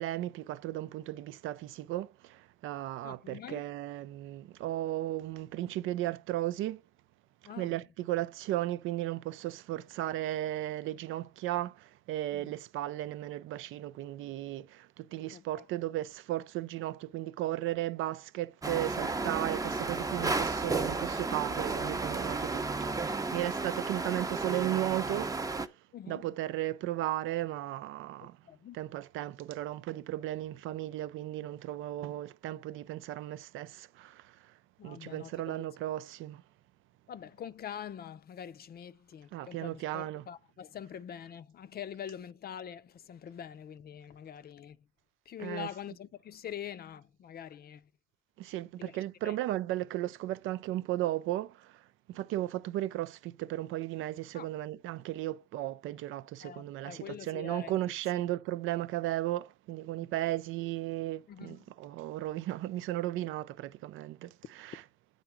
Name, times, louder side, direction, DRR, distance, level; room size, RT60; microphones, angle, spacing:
voice 1, 0.0-6.8 7.6-25.3 26.1-28.4 28.7-34.5 34.8-36.4 39.3-40.2 45.4-45.7 48.4-64.8, right 15 dB, 90° right, 0.4 m, -35 dB
voice 2, 3.0-3.6 7.5-7.8 12.3-12.5 15.3-15.6 18.7-18.8 25.9-26.3 28.2-28.8 34.8-35.6 37.1-44.8 45.3-47.9 48.8-49.0 49.2-49.4 54.3-54.5 56.4-57.8 60.0-60.1 61.3-61.6, left 9 dB, 50° left, 0.5 m, -44 dB
sound 1, 18.6-25.7, right 3 dB, 15° right, 0.6 m, -33 dB
9.0 x 3.8 x 5.9 m
cardioid pair, 90°, 20 cm